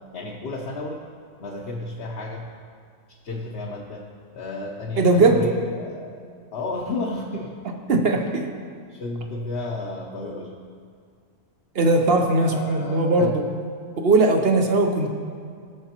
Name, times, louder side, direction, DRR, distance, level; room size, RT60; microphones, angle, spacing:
voice 1, 0.1-1.0 1.4-2.5 3.1-4.0 4.3-6.2 6.5-7.5 8.1-8.4 8.9-10.6 12.4-13.3, left 2 dB, 50° left, -2 dB, 1.0 m, -32 dB
voice 2, 5.0-5.5 7.9-8.5 11.7-13.4 14.0-15.1, right 2 dB, 50° right, 3 dB, 0.9 m, -19 dB
17.0 x 6.8 x 2.9 m, 2.2 s
omnidirectional pair, 1.4 m